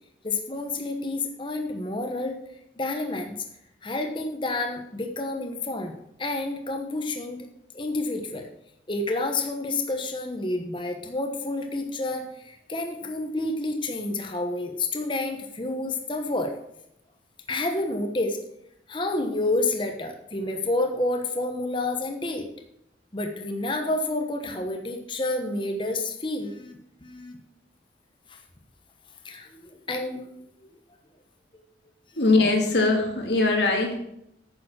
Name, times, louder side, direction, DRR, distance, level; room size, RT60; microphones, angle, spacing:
voice 1, 0.2-2.4 2.8-3.3 3.8-5.9 6.2-7.5 7.7-8.5 8.9-16.5 17.5-18.4 18.9-22.5 23.1-27.4 28.3-28.4 29.2-30.3 31.5-31.6, left 2 dB, 25° left, 4 dB, 1.1 m, -29 dB
voice 2, 32.2-34.0, left 3 dB, 70° left, 1 dB, 2.2 m, -21 dB
9.6 x 6.9 x 6.3 m, 0.78 s
head